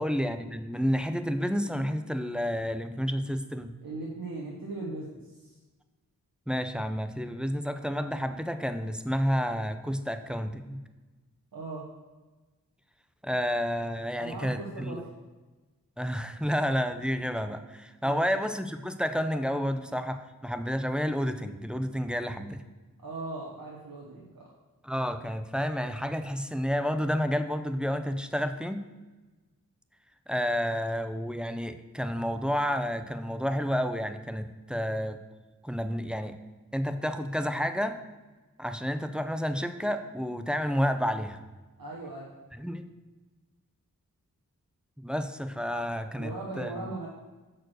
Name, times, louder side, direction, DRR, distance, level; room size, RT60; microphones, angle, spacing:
voice 1, 0.0-3.7 6.5-10.8 13.2-15.0 16.0-22.6 24.8-28.8 30.3-35.2 35.6-36.3 36.7-38.0 38.6-41.4 42.6-42.9 45.0-46.7, equal, 5° right, 9 dB, 0.6 m, -30 dB
voice 2, 3.8-5.6 11.5-11.9 14.2-15.1 18.0-18.4 23.0-24.5 41.8-42.3 46.2-47.1, right 2 dB, 80° right, -4 dB, 1.2 m, -39 dB
6.2 x 4.7 x 6.3 m, 1.2 s
cardioid pair, 45°, 35 cm